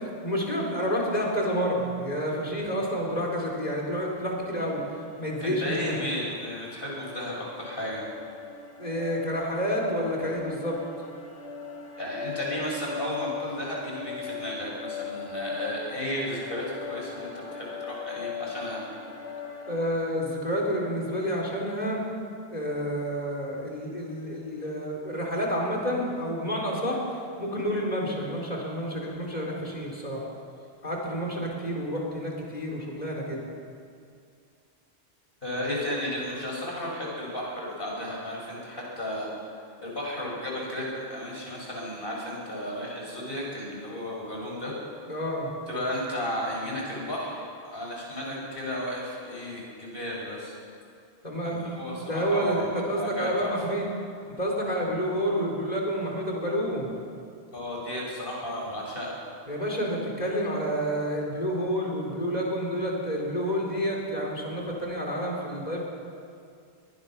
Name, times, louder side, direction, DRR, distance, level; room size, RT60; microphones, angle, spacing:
voice 1, 0.2-4.8 5.2-6.0 8.8-10.8 19.7-22.0 22.5-30.2 30.8-33.4 45.1-45.5 51.2-53.9 54.4-56.9 59.5-65.8, equal, 40° left, -1 dB, 4.3 m, -29 dB
sound 1, 3.0-19.8, left 6 dB, 85° left, 2.1 m, -40 dB
voice 2, 5.4-8.1 12.0-18.8 35.4-39.3 39.8-44.7 45.7-50.5 51.4-53.8 57.5-59.2, equal, 60° left, -3 dB, 6.6 m, -34 dB
23.0 x 20.0 x 6.1 m, 2.4 s
omnidirectional pair, 1.1 m